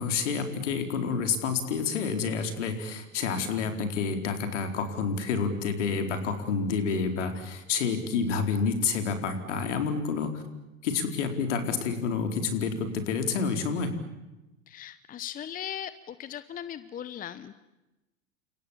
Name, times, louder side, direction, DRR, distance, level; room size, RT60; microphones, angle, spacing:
voice 1, 0.0-10.4 10.8-13.9, left 5 dB, 60° left, 6 dB, 4.4 m, -29 dB
voice 2, 14.7-17.5, left 10 dB, 20° left, 15 dB, 0.9 m, -38 dB
30.0 x 27.0 x 7.4 m, 0.99 s
figure-of-eight pair, 85°, 40 cm